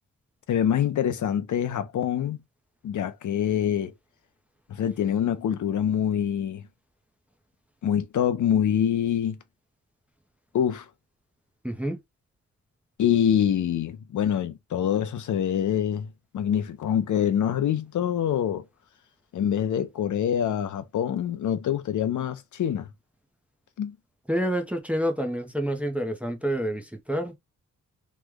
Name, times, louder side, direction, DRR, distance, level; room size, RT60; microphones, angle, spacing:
voice 1, 0.5-2.4 2.8-3.9 4.7-6.6 7.8-9.4 10.5-10.9 13.0-16.1 16.3-18.6 19.3-22.9 23.8-24.0, left 9 dB, 70° left, 0.6 m, -25 dB
voice 2, 11.6-12.0 24.3-27.3, equal, 5° right, 0.5 m, -28 dB
3.1 x 2.1 x 3.4 m
wide cardioid pair, 155°, 31 cm